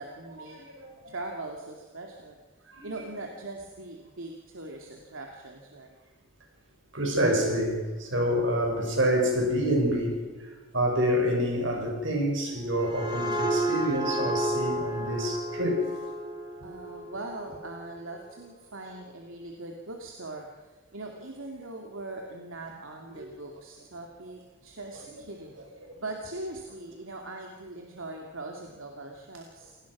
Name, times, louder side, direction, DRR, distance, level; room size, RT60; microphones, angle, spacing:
voice 1, 0.0-0.6 1.1-2.4 2.8-6.0 16.6-29.8, right 2 dB, 85° right, 2.4 m, -41 dB
voice 2, 0.5-1.4 2.7-3.0 6.9-15.8 23.2-23.3 25.8-25.9, equal, 70° right, 6.1 m, -27 dB
sound 1, 12.5-18.0, right 1 dB, 20° right, 2.3 m, -32 dB
28.0 x 18.5 x 6.1 m
head